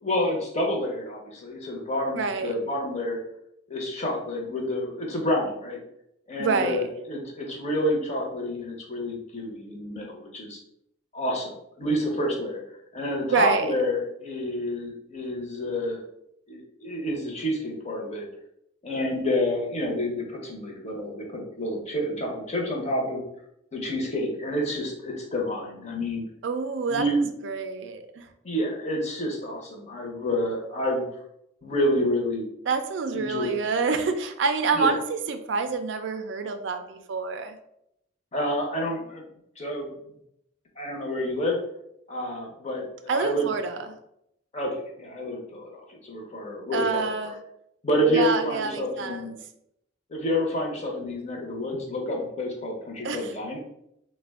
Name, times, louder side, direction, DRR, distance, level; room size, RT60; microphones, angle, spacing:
voice 1, 0.0-3.2 3.7-5.8 6.3-10.6 11.1-11.5 11.8-12.6 12.9-16.0 16.5-18.3 18.8-23.2 23.7-26.2 26.9-27.2 28.4-31.1 31.6-32.4 33.1-33.7 34.8-34.9 38.3-39.3 39.6-39.9 40.8-41.6 42.1-43.5 44.5-47.4 47.8-49.4 50.1-53.6, left 1 dB, 35° left, 0 dB, 0.7 m, -28 dB
voice 2, 2.1-2.6 6.4-6.9 13.3-13.7 26.4-27.1 27.4-28.3 32.7-37.5 43.1-43.9 46.7-47.4 48.1-49.3 53.0-53.3, right 4 dB, 65° right, 8 dB, 0.3 m, -27 dB
3.3 x 2.1 x 3.4 m, 0.78 s
head